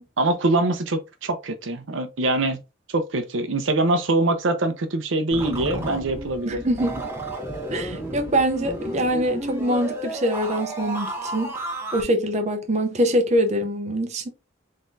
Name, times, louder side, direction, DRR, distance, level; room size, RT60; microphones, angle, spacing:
voice 1, 0.2-2.6 2.9-6.6, right 2 dB, 75° right, 0.7 m, -23 dB
sound 1, 5.3-12.0, right 1 dB, 10° right, 1.0 m, -32 dB
voice 2, 6.5-7.1 7.7-11.5 11.9-14.3, right 1 dB, 35° right, 0.6 m, -24 dB
3.7 x 3.7 x 2.6 m
head